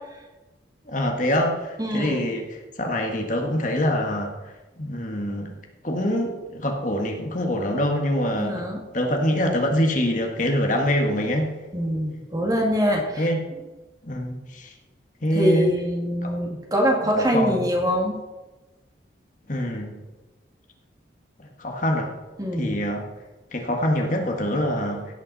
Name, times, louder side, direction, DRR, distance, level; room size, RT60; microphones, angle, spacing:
voice 1, 0.8-5.6 5.8-8.6 8.9-11.5 13.2-13.4 14.0-14.7 15.2-15.7 16.2-16.6 17.0-17.7 19.5-19.9 21.4-22.1 22.6-23.0 23.5-25.0, equal, 45° left, 2 dB, 1.7 m, -25 dB
voice 2, 1.8-2.3 8.3-8.8 11.7-13.2 15.3-18.2 22.4-22.8, equal, 20° right, 0 dB, 2.3 m, -24 dB
17.0 x 9.2 x 4.2 m, 1.2 s
head